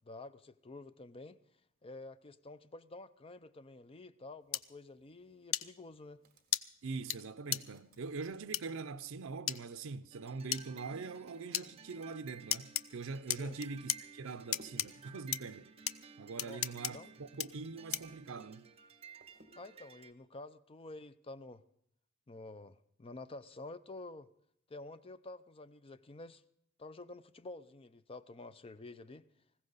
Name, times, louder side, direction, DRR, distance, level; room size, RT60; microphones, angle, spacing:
voice 1, 0.0-1.4 1.8-6.2 13.3-13.6 16.4-17.1 19.6-21.6 22.3-24.3 24.7-26.4 26.8-29.2, left 2 dB, 30° left, 0.5 m, -50 dB
sound 1, 4.5-4.6 5.5-5.6 6.5-6.6 7.1-7.2 7.5-7.6 8.5-8.6 9.5-9.6 10.5-10.6 11.5-11.7 12.5-12.8 13.3-14.0 14.5-14.9 15.3-15.4 15.9-16.0 16.4-16.9 17.4-17.5 17.9-18.2, left 12 dB, 80° left, 0.5 m, -33 dB
sound 2, 6.2-9.1 10.1-18.3 18.6-19.9, right 1 dB, 50° right, 1.9 m, -67 dB
voice 2, 6.8-15.7 16.2-18.7, right 4 dB, 75° right, 0.6 m, -43 dB
sound 3, 10.1-20.1, right 6 dB, 30° right, 0.7 m, -56 dB
19.5 x 16.0 x 4.0 m
head